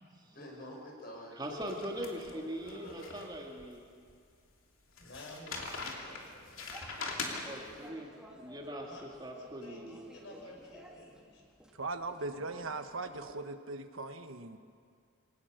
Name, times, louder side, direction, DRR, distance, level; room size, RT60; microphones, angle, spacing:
voice 1, 0.3-3.6, equal, 50° left, 0 dB, 5.4 m, -49 dB
voice 2, 1.4-3.8 7.3-10.1, equal, 20° right, 0 dB, 2.2 m, -41 dB
sound 1, 1.6-3.7 4.1-4.2 5.0-7.8, left 3 dB, 90° left, 3.0 m, -42 dB
voice 3, 5.0-6.7 8.8-9.0 9.3-11.4, left 1 dB, 65° left, 0 dB, 5.6 m, -52 dB
sound 2, 6.0-13.4, equal, 5° right, 2.1 m, -57 dB
voice 4, 11.8-14.6, right 3 dB, 90° right, 8 dB, 1.3 m, -39 dB
24.5 x 18.5 x 6.6 m, 2.2 s
head